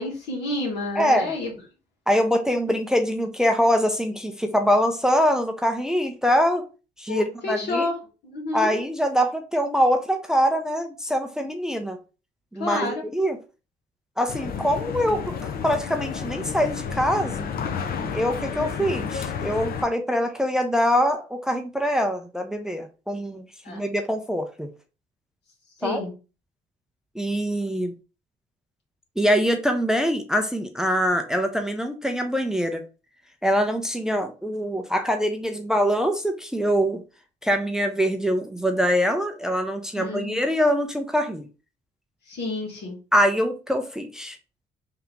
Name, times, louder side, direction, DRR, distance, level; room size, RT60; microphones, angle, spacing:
voice 1, 0.0-1.5 7.1-7.9 8.2-8.7 12.6-13.0 23.6-23.8 25.8-26.1 40.0-40.4 42.3-43.0, left 2 dB, 75° left, 1.8 m, -29 dB
voice 2, 0.9-1.3 2.1-6.6 7.0-7.9 8.5-12.0 12.5-13.4 14.2-17.5 18.1-24.7 25.8-26.0 27.2-27.9 29.2-32.8 33.4-37.0 37.4-41.5 43.1-44.4, equal, 5° right, 0.5 m, -24 dB
sound 1, 14.3-19.8, left 6 dB, 60° left, 0.6 m, -31 dB
3.5 x 2.9 x 3.5 m
cardioid pair, 95°, 18 cm